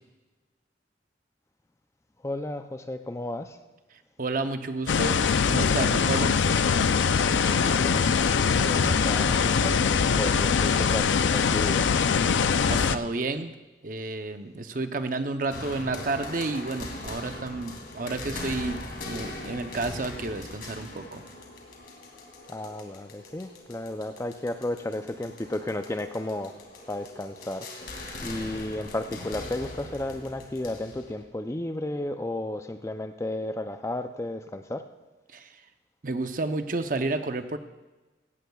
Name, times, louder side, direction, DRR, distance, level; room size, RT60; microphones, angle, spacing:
voice 1, 2.2-3.6 7.4-8.0 8.3-11.9 22.5-26.6 26.9-27.7 28.2-34.9, left 1 dB, 15° left, 8 dB, 0.4 m, -33 dB
voice 2, 4.2-5.2 5.5-6.3 12.2-12.4 12.7-13.5 13.8-21.2 35.3-35.6 36.0-37.6, right 3 dB, 45° right, 8 dB, 0.7 m, -31 dB
sound 1, 4.9-13.0, left 6 dB, 85° left, 0.5 m, -22 dB
sound 2, 15.5-31.2, left 2 dB, 55° left, 2.4 m, -41 dB
16.5 x 16.0 x 2.3 m, 1.2 s
head